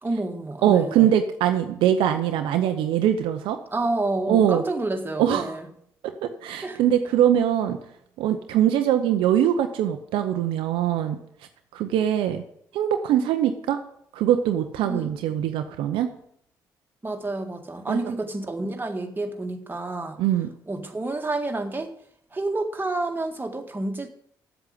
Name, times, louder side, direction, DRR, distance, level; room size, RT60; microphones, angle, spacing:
voice 1, 0.0-1.1 3.7-5.7 6.6-6.8 14.9-15.1 17.0-20.2 20.7-21.9 22.3-24.1, right 2 dB, 20° right, 4 dB, 1.9 m, -29 dB
voice 2, 0.6-3.6 4.3-4.6 5.2-5.5 6.0-7.8 8.2-11.2 11.7-12.4 12.7-13.8 14.1-16.1 17.9-18.1 20.2-20.5, right 10 dB, 75° right, 7 dB, 0.7 m, -22 dB
7.9 x 7.3 x 8.5 m, 0.70 s
hypercardioid pair, 45°, 9 cm